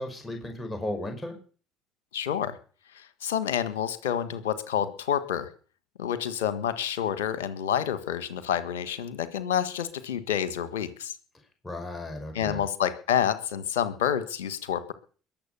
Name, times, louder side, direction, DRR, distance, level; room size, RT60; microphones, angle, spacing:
voice 1, 0.0-1.4 11.6-12.6, left 1 dB, 25° left, 5 dB, 5.6 m, -35 dB
voice 2, 2.1-2.5 3.2-5.5 6.0-11.1 12.3-14.9, left 9 dB, 80° left, 13 dB, 1.5 m, -28 dB
21.5 x 7.5 x 7.1 m, 0.41 s
hypercardioid pair, 60°, 0 cm